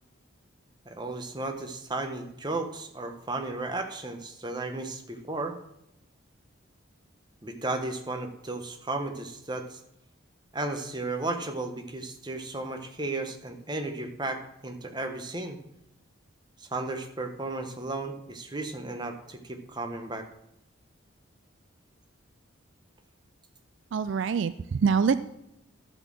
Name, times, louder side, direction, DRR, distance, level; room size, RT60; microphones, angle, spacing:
voice 1, 0.8-5.6 7.4-9.8 10.5-15.6 16.6-20.3, right 2 dB, 20° right, 5 dB, 1.0 m, -34 dB
voice 2, 23.9-25.2, right 6 dB, 65° right, 13 dB, 0.3 m, -25 dB
12.0 x 4.4 x 7.4 m, 0.83 s
head